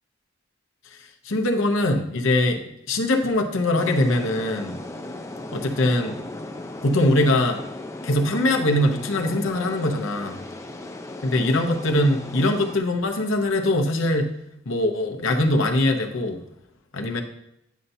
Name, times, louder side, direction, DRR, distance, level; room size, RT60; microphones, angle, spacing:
voice 1, 1.2-2.6 2.9-4.8 5.5-6.2 6.8-7.6 8.0-10.4 11.2-14.3 14.7-16.4 16.9-17.2, left 1 dB, 85° left, 3 dB, 0.8 m, -22 dB
sound 1, 3.7-12.8, left 2 dB, 15° left, 0.5 m, -37 dB
9.2 x 5.5 x 2.7 m, 0.80 s
head